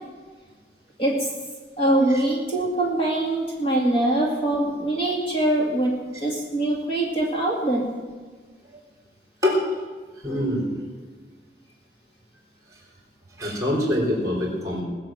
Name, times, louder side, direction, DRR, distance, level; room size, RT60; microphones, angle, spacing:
voice 1, 1.0-1.3 1.8-7.8, right 1 dB, 30° left, -2 dB, 2.2 m, -23 dB
voice 2, 10.2-10.8 13.4-14.8, left 1 dB, 20° right, -1 dB, 4.1 m, -24 dB
20.0 x 6.9 x 7.7 m, 1.4 s
head